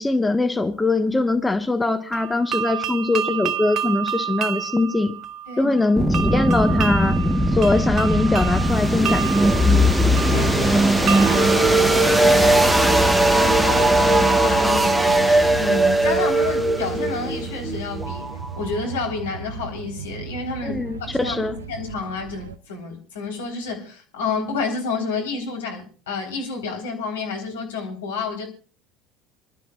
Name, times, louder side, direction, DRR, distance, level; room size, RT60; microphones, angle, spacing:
voice 1, 0.0-5.2 5.6-6.0 6.3-7.2 7.5-9.6 20.6-21.5, left 2 dB, 10° left, 1.3 m, -22 dB
sound 1, 2.1-12.9, right 9 dB, 45° right, 1.1 m, -30 dB
voice 2, 5.5-5.8 10.2-20.8 21.2-28.5, left 4 dB, 75° left, 3.7 m, -30 dB
sound 2, 6.0-18.8, right 1 dB, 5° right, 1.2 m, -19 dB
sound 3, 9.7-22.6, right 8 dB, 80° right, 1.0 m, -35 dB
27.5 x 12.5 x 2.3 m
figure-of-eight pair, 65°, 0 cm